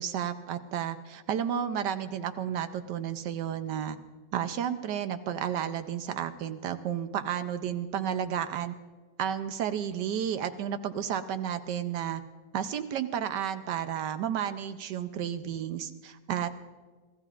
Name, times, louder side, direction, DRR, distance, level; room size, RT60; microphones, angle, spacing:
voice 1, 0.0-4.0 4.3-8.7 9.2-12.2 12.5-16.5, right 9 dB, 70° right, 10 dB, 1.1 m, -32 dB
25.5 x 15.5 x 2.4 m, 1.4 s
omnidirectional pair, 2.2 m